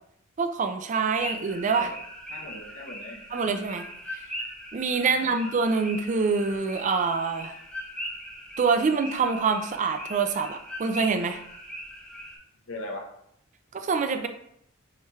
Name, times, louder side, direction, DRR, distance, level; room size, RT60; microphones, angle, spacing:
voice 1, 0.4-1.9 3.3-3.9 4.1-4.2 4.7-7.5 8.6-11.4 13.7-14.3, right 4 dB, 35° right, 7 dB, 0.3 m, -25 dB
sound 1, 1.1-12.4, equal, 5° left, 0.7 m, -40 dB
voice 2, 2.3-3.6 5.0-5.3 12.7-13.1, left 1 dB, 75° left, 1 dB, 0.8 m, -40 dB
5.4 x 3.2 x 2.3 m, 0.72 s
head